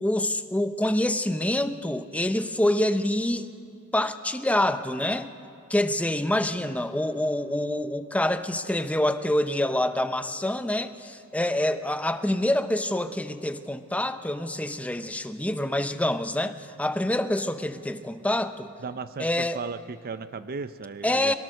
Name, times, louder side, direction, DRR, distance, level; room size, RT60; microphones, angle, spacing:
voice 1, 0.0-3.5 3.9-5.3 5.7-18.7 19.2-19.6 21.0-21.3, left 1 dB, 5° left, 9 dB, 0.7 m, -26 dB
voice 2, 18.8-21.3, right 4 dB, 45° right, 12 dB, 0.5 m, -35 dB
23.0 x 18.5 x 6.5 m, 2.5 s
head